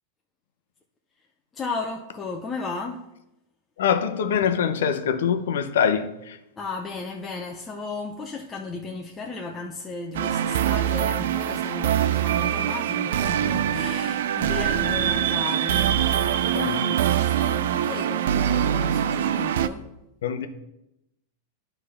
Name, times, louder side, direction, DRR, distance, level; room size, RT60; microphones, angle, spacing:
voice 1, 1.5-3.1 6.6-19.9, left 4 dB, 15° left, 0.6 m, -35 dB
voice 2, 3.8-6.4 16.5-16.9 20.2-20.5, left 7 dB, 80° left, 0.7 m, -24 dB
sound 1, 10.1-19.7, right 10 dB, 75° right, 0.4 m, -24 dB
9.9 x 3.4 x 5.6 m
supercardioid pair, 135°, 0 cm